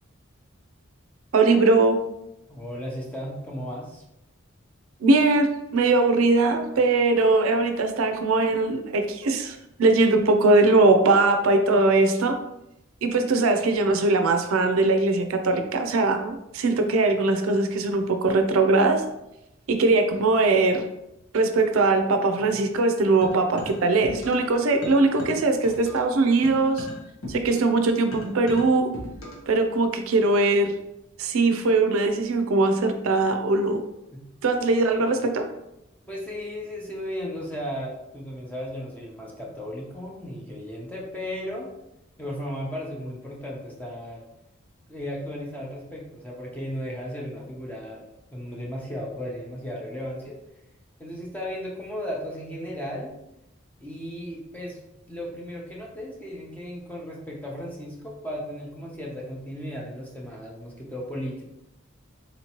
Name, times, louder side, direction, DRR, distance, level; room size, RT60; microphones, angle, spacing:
voice 1, 1.3-2.0 5.0-12.4 13.0-19.0 19.7-20.8 21.3-26.9 27.3-28.9 29.5-30.7 31.2-33.8 34.4-35.4, right 3 dB, 80° right, 6 dB, 0.4 m, -21 dB
voice 2, 2.5-4.0 34.1-34.2 36.1-41.7 42.2-44.2 44.9-50.4 51.0-53.1 53.8-54.8 55.1-61.4, equal, 5° left, -3 dB, 0.7 m, -35 dB
sound 1, 23.2-24.5 24.8-29.5, left 1 dB, 90° left, 1.0 m, -39 dB
4.1 x 2.9 x 2.9 m, 0.87 s
head